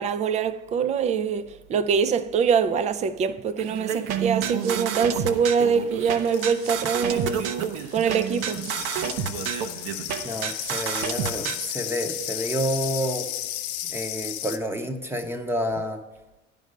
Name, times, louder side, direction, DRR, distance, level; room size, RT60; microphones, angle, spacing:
voice 1, 0.0-7.5 7.9-8.7, right 6 dB, 25° right, 0.4 m, -24 dB
sound 1, 3.6-11.6, right 8 dB, 70° right, 0.9 m, -29 dB
sound 2, 6.2-14.6, left 13 dB, 85° left, 0.7 m, -34 dB
voice 2, 10.2-13.3 13.9-16.0, equal, 5° right, 0.8 m, -29 dB
10.5 x 5.3 x 6.4 m
supercardioid pair, 125°, 32 cm